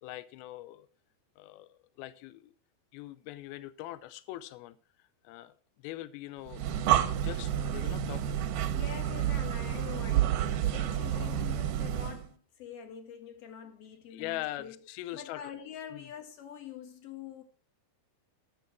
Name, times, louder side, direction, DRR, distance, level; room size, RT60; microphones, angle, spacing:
voice 1, 0.0-0.9 1.4-2.5 2.9-4.8 5.2-5.5 5.8-6.8 7.2-8.5 14.1-15.5 15.9-16.1, left 16 dB, 80° left, 2.4 m, -42 dB
Breathing, 6.5-12.3, right 10 dB, 80° right, 1.9 m, -29 dB
voice 2, 8.7-14.8 15.1-17.4, left 8 dB, 60° left, 1.6 m, -45 dB
12.0 x 8.3 x 4.6 m
omnidirectional pair, 4.9 m